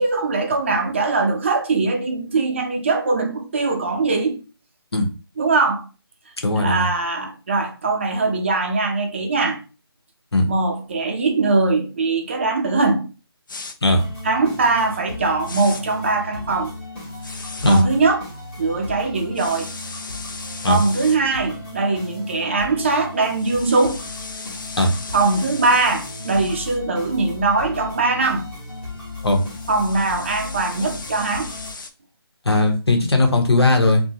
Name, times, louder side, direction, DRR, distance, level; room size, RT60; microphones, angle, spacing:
voice 1, 0.0-4.4 5.4-5.8 6.6-9.6 10.5-13.1 14.2-16.7 17.7-18.3 18.6-19.7 20.7-24.0 25.1-28.5 29.7-31.5, right 3 dB, 30° right, 0.5 m, -21 dB
voice 2, 6.4-6.9 10.3-10.5 13.8-14.0 17.6-17.8 20.6-20.8 24.8-24.9 29.2-29.4 32.4-34.0, left 2 dB, 80° left, 1.0 m, -17 dB
sound 1, 13.5-13.8 15.4-15.8 17.2-17.8 19.3-21.2 23.2-26.8 28.9-31.9, left 3 dB, 50° left, 0.5 m, -37 dB
sound 2, 13.9-31.7, left 2 dB, 20° left, 1.0 m, -36 dB
3.6 x 2.1 x 2.8 m
figure-of-eight pair, 155°, 13 cm